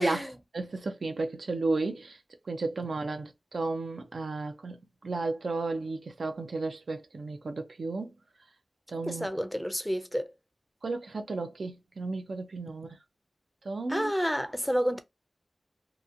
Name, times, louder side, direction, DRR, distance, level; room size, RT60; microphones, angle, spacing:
voice 1, 0.0-0.4 9.0-10.3 13.9-15.0, equal, 5° left, 0.5 m, -29 dB
voice 2, 0.5-2.2 2.5-4.8 5.0-8.1 8.9-9.3 10.8-12.9 13.7-14.1, right 3 dB, 80° right, 0.5 m, -33 dB
2.8 x 2.3 x 2.5 m
wide cardioid pair, 55°, 0 cm